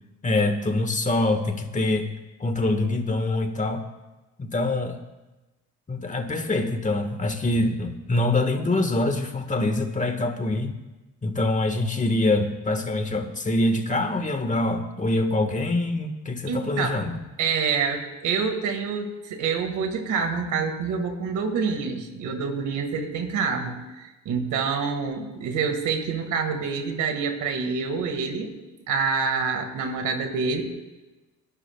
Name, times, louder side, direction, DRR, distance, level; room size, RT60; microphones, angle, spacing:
voice 1, 0.2-2.1 2.4-3.8 4.4-5.0 5.9-10.7 11.2-17.2, left 2 dB, 25° left, 6 dB, 1.7 m, -24 dB
voice 2, 16.5-17.1 17.4-28.5 28.9-30.6, right 5 dB, 80° right, 5 dB, 2.1 m, -27 dB
29.0 x 11.5 x 2.4 m, 1.1 s
cardioid pair, 90°, 30 cm